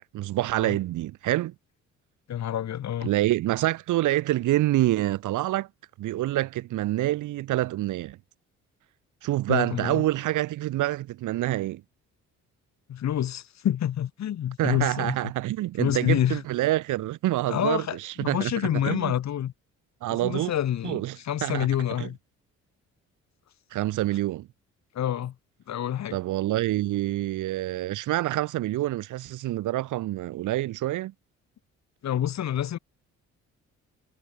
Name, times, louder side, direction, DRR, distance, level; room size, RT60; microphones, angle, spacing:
voice 1, 0.1-1.5 3.0-5.7 6.0-8.2 9.2-11.8 14.6-19.1 20.0-20.5 20.8-21.7 22.0-22.1 23.7-24.5 26.1-31.1, right 15 dB, 80° right, 1.2 m, -27 dB
voice 2, 2.3-3.1 9.5-10.0 12.9-15.2 15.8-16.4 17.5-19.5 20.1-22.2 24.9-25.3 25.7-26.2 32.0-32.8, left 10 dB, 65° left, 2.3 m, -28 dB
cardioid pair, 90°, 30 cm